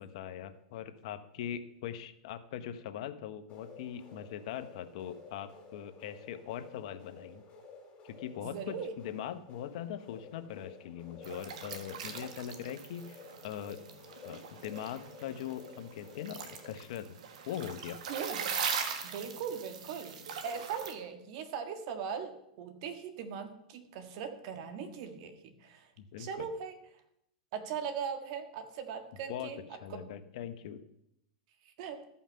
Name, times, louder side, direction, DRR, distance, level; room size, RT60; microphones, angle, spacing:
voice 1, 0.0-7.4 8.0-8.8 9.0-13.8 14.2-17.2 17.5-18.0 26.0-26.5 29.3-29.5 29.8-30.8, left 10 dB, 65° left, 10 dB, 0.9 m, -41 dB
sound 1, 3.5-16.8, left 4 dB, 30° left, 2.6 m, -53 dB
voice 2, 8.4-8.9 18.1-18.5 19.0-25.9 26.2-27.0 27.5-29.6 29.9-30.1 31.6-32.0, right 7 dB, 60° right, 8 dB, 1.5 m, -40 dB
sound 2, 11.2-20.9, right 6 dB, 75° right, 1.4 m, -41 dB
13.5 x 5.7 x 5.6 m, 0.78 s
hypercardioid pair, 120°, 4 cm